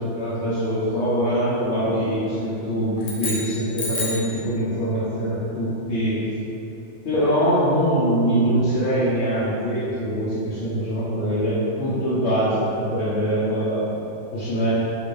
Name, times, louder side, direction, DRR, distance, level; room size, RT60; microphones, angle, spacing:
voice 1, 0.0-6.2 7.0-13.9 14.3-14.7, equal, 90° left, -12 dB, 1.1 m, -23 dB
sound 1, 3.0-4.4, left 2 dB, 55° left, 0.4 m, -30 dB
3.1 x 2.5 x 3.1 m, 2.9 s
omnidirectional pair, 1.2 m